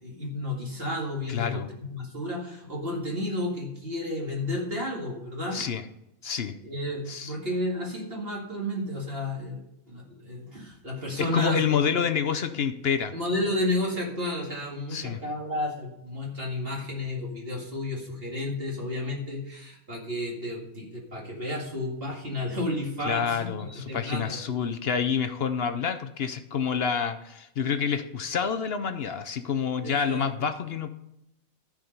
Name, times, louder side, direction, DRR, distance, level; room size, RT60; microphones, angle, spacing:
voice 1, 0.0-5.6 6.6-11.8 13.1-24.8 29.8-30.3, left 1 dB, 45° right, -2 dB, 2.3 m, -32 dB
voice 2, 1.3-1.7 5.5-5.8 6.2-6.6 7.1-7.3 11.2-13.1 14.9-15.2 23.0-30.9, left 7 dB, 55° left, 9 dB, 0.7 m, -28 dB
13.5 x 5.1 x 5.4 m, 0.83 s
omnidirectional pair, 1.5 m